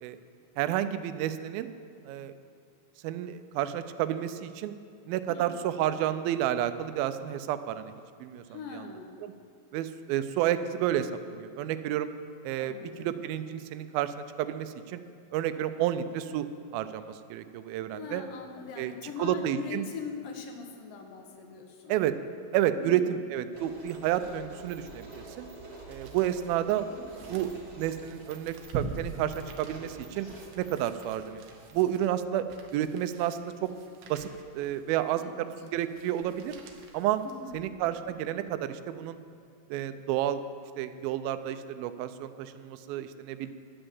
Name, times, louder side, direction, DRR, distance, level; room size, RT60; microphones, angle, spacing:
voice 1, 0.6-1.7 2.1-2.3 3.0-4.7 5.1-7.9 8.2-8.4 8.7-8.8 9.2-9.3 9.7-12.1 12.4-15.0 15.3-16.5 16.7-18.2 18.8-18.9 19.2-19.8 21.9-22.1 22.5-23.0 23.3-25.1 25.4-25.5 25.9-26.9 27.3-27.5 27.8-30.3 30.6-31.4 31.7-32.5 32.7-33.7 34.1-36.6 36.9-37.2 37.5-39.2 39.7-40.4 40.8-43.5, right 11 dB, 85° right, 11 dB, 2.4 m, -30 dB
voice 2, 5.3-5.7 8.5-9.1 12.6-13.2 17.9-22.0 22.8-23.2 26.9-27.4 35.2-35.5 37.2-37.6, left 5 dB, 75° left, 4 dB, 2.7 m, -42 dB
sound 1, 23.5-32.0, right 2 dB, 30° right, 2.3 m, -48 dB
sound 2, 25.3-37.9 38.4-38.5, right 4 dB, 70° right, 1.7 m, -45 dB
11.5 x 8.8 x 7.1 m, 2.3 s
omnidirectional pair, 4.2 m